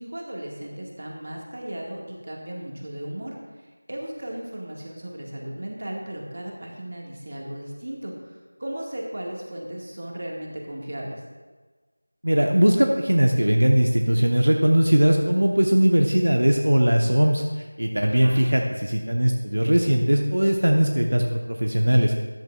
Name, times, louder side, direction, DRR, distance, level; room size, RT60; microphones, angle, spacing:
voice 1, 0.0-3.4 3.9-8.1 8.6-11.2 18.0-18.5, right 1 dB, 40° right, -1 dB, 1.8 m, -35 dB
voice 2, 12.2-22.1, equal, 70° right, 2 dB, 1.0 m, -20 dB
13.5 x 12.0 x 2.4 m, 1.3 s
figure-of-eight pair, 175°, 0 cm